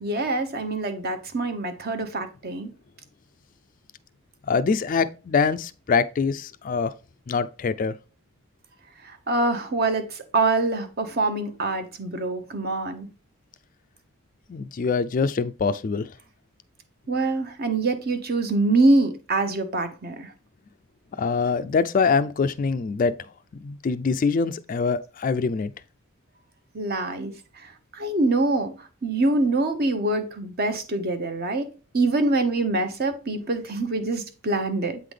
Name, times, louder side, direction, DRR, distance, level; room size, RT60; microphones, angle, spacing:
voice 1, 0.0-2.7 9.0-13.1 17.1-20.3 26.7-27.3 27.6-31.7 31.9-35.0, right 2 dB, 45° right, 0.9 m, -25 dB
voice 2, 4.5-6.9 7.3-7.9 14.5-16.1 21.2-23.1 23.6-25.7, left 5 dB, 40° left, 0.3 m, -24 dB
8.2 x 3.9 x 3.2 m
head